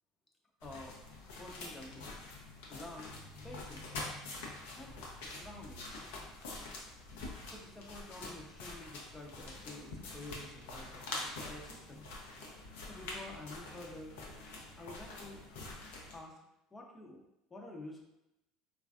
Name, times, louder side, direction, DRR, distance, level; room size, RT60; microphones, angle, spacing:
sound 1, 0.6-16.2, left 2 dB, 80° left, 0.6 m, -46 dB
voice 1, 0.6-1.0 1.4-2.1 2.7-3.1 3.4-3.9 4.7-5.0 5.3-5.9 7.4-12.1 12.4-12.5 12.9-14.2 14.7-15.4 16.1-16.4 16.7-17.2 17.5-18.0, left 2 dB, 20° left, 1 dB, 0.6 m, -49 dB
3.1 x 2.3 x 2.4 m, 0.88 s
hypercardioid pair, 85°, 0 cm